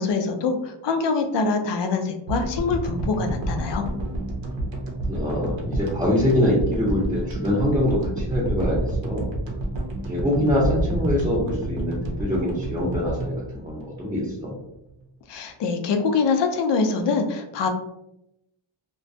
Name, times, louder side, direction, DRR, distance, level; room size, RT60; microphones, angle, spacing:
voice 1, 0.0-3.9 15.3-17.7, left 4 dB, 65° left, 6 dB, 0.5 m, -24 dB
sound 1, 2.3-14.6, right 1 dB, 70° right, 0.7 m, -29 dB
voice 2, 5.1-9.3 10.1-14.5, left 1 dB, 10° right, -7 dB, 0.7 m, -24 dB
2.2 x 2.2 x 2.6 m, 0.83 s
cardioid pair, 85°, 46 cm